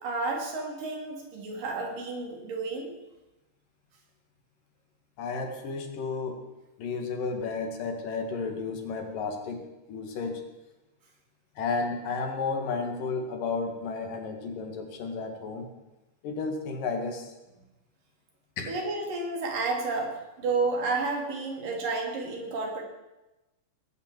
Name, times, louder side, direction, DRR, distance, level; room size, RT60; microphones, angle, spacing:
voice 1, 0.0-2.9 18.7-20.1 20.4-22.8, right 3 dB, 75° right, 1 dB, 4.5 m, -31 dB
voice 2, 5.2-6.4 6.8-10.4 11.6-15.7 16.2-17.3 18.6-18.7, left 4 dB, 75° left, 4 dB, 3.6 m, -32 dB
19.5 x 9.3 x 7.5 m, 1.0 s
omnidirectional pair, 3.9 m